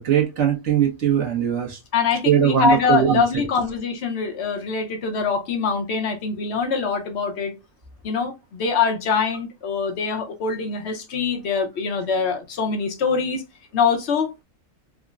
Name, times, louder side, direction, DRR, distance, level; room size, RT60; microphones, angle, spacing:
voice 1, 0.0-1.8 2.2-3.2, right 10 dB, 60° right, 1.3 m, -20 dB
voice 2, 1.9-7.5 8.0-13.4 13.7-14.3, left 5 dB, 55° left, 1.0 m, -23 dB
5.0 x 2.1 x 2.4 m
omnidirectional pair, 1.4 m